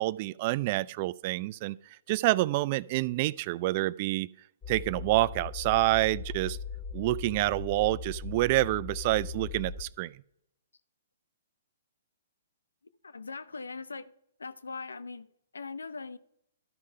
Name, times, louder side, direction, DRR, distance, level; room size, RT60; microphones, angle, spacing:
voice 1, 0.0-1.8 2.1-4.3 4.7-6.6 6.9-10.2, right 18 dB, 40° right, 0.3 m, -27 dB
sound 1, 4.6-9.8, left 5 dB, 25° left, 3.2 m, -39 dB
voice 2, 13.0-14.1 14.4-16.2, left 4 dB, 90° left, 0.7 m, -41 dB
12.5 x 4.9 x 5.6 m
hypercardioid pair, 135°, 0 cm